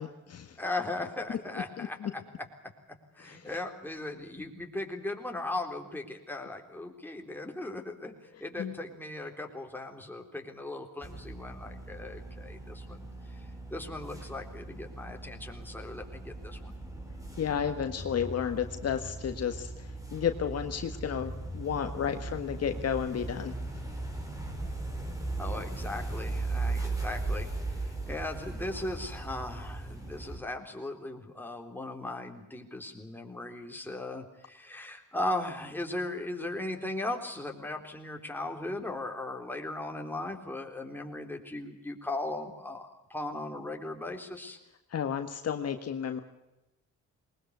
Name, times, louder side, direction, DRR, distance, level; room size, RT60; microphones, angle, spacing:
voice 1, 0.0-0.6 1.8-2.1 3.2-3.4 8.6-8.7 17.4-23.5 44.9-46.2, left 8 dB, 55° left, 7 dB, 1.7 m, -32 dB
voice 2, 0.6-2.5 2.9-16.7 25.4-44.6, left 2 dB, 5° left, 2 dB, 3.8 m, -38 dB
sound 1, 11.0-30.4, right 2 dB, 10° right, 4.9 m, -38 dB
21.0 x 20.0 x 8.1 m, 0.94 s
cardioid pair, 90°, 30 cm